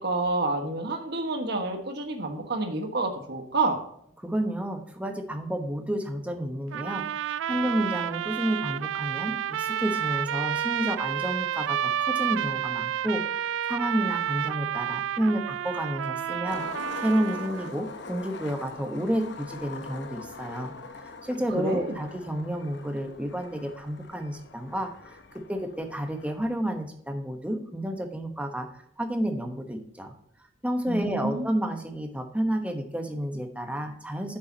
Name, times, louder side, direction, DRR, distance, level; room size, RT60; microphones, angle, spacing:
voice 1, 0.0-3.8 21.5-22.0 30.9-31.5, right 2 dB, 60° right, 4 dB, 1.5 m, -28 dB
voice 2, 4.2-16.7 17.0-25.2 25.5-30.1 30.6-34.4, equal, 5° right, 4 dB, 1.0 m, -30 dB
sound 1, 6.7-17.7, right 10 dB, 80° right, 0.3 m, -30 dB
Skateboard, 16.5-26.6, left 3 dB, 65° left, 0.8 m, -43 dB
9.5 x 7.1 x 2.8 m, 0.69 s
head